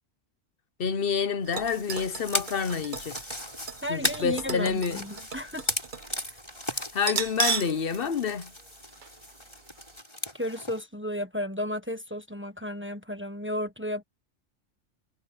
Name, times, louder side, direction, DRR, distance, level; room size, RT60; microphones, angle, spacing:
voice 1, 0.8-3.2 3.9-5.2 6.9-8.5, left 6 dB, 55° left, 1.0 m, -28 dB
sound 1, 1.5-6.1 6.4-6.5 7.0-7.8 8.1-8.2 9.0-9.2 9.6-9.7, right 5 dB, 45° right, 1.1 m, -34 dB
sound 2, 1.6-10.8, left 1 dB, 20° left, 5.3 m, -36 dB
voice 2, 3.8-5.7 10.3-14.0, equal, 10° right, 1.3 m, -33 dB
omnidirectional pair, 1.3 m